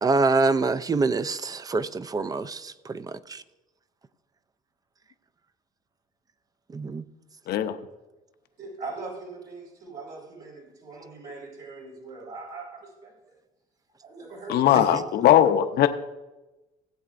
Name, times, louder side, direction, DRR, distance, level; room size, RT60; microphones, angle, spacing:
voice 1, 0.0-3.4 6.7-7.1 14.7-15.0, right 3 dB, 20° right, 13 dB, 0.4 m, -26 dB
voice 2, 8.6-13.4 14.0-15.1, right 3 dB, 70° right, -4 dB, 3.9 m, -41 dB
voice 3, 14.5-15.9, left 11 dB, 70° left, 8 dB, 0.7 m, -19 dB
17.0 x 7.9 x 2.5 m, 1.1 s
cardioid pair, 110°, 17 cm